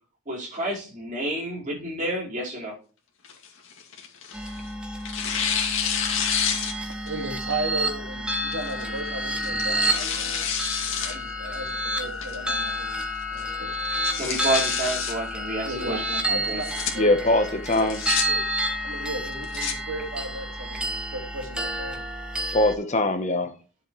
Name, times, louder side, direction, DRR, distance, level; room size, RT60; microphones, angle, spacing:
voice 1, 0.3-2.7 14.2-16.6, right 1 dB, 40° right, 4.7 m, -29 dB
Tearing, 3.2-4.6 5.0-7.1 7.5-7.6 8.5-8.8 9.4-11.1 11.5-11.6 12.2-12.6 13.0-13.1 13.4-13.5 13.8-15.1 16.4-16.9 17.7-18.2 19.2-19.7, left 7 dB, 65° left, 2.3 m, -28 dB
sound 1, 4.3-22.7, equal, 5° right, 1.5 m, -30 dB
voice 2, 7.1-10.4 11.0-12.9 13.3-13.9 15.6-17.1 17.7-17.9 18.3-18.4 18.8-22.0, right 2 dB, 75° right, 2.1 m, -35 dB
voice 3, 17.0-18.0 22.5-23.5, left 2 dB, 35° left, 1.1 m, -22 dB
11.0 x 7.3 x 3.2 m
head